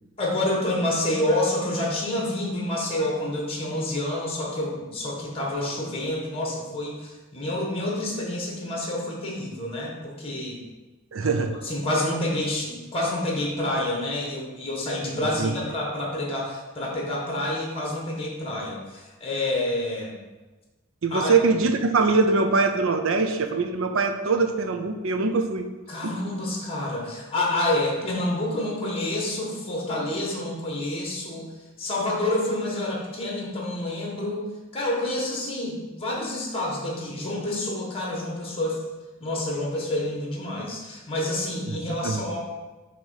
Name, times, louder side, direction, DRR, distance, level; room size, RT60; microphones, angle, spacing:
voice 1, 0.2-10.6 11.2-11.3 11.6-20.1 21.1-21.3 25.9-31.5 31.8-38.8 39.2-42.4, left 1 dB, 25° left, -2 dB, 1.4 m, -28 dB
voice 2, 11.1-11.5 15.4-15.5 21.0-25.7 26.0-26.1 41.7-42.3, right 4 dB, 65° right, 6 dB, 0.6 m, -23 dB
5.9 x 3.0 x 5.7 m, 1.2 s
head